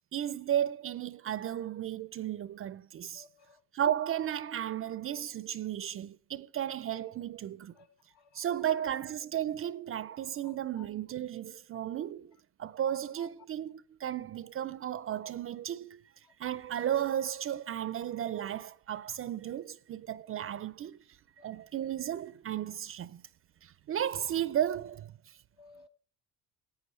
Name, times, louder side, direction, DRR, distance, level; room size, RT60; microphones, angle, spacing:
voice 1, 0.1-3.3 3.7-7.7 8.3-16.0 16.4-21.0 21.4-23.2 23.6-25.4, right 10 dB, 35° right, 0.4 m, -34 dB
voice 2, 3.1-3.6 7.7-7.9 8.1-8.9 10.4-10.8 21.4-21.5 25.6-25.9, left 6 dB, 65° left, 1.6 m, -56 dB
14.5 x 8.9 x 3.1 m
cardioid pair, 115°, 40 cm